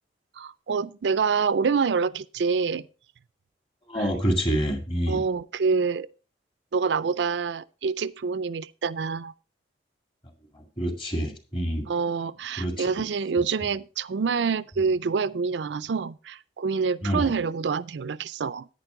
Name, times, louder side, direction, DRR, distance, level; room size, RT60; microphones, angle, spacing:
voice 1, 0.4-2.8 3.9-4.1 5.1-6.1 6.7-9.3 11.9-18.7, right 5 dB, 75° right, 0.4 m, -26 dB
voice 2, 3.9-5.2 10.5-11.9 12.6-13.0 17.0-17.3, equal, 30° left, 2.0 m, -27 dB
10.5 x 9.4 x 3.8 m
head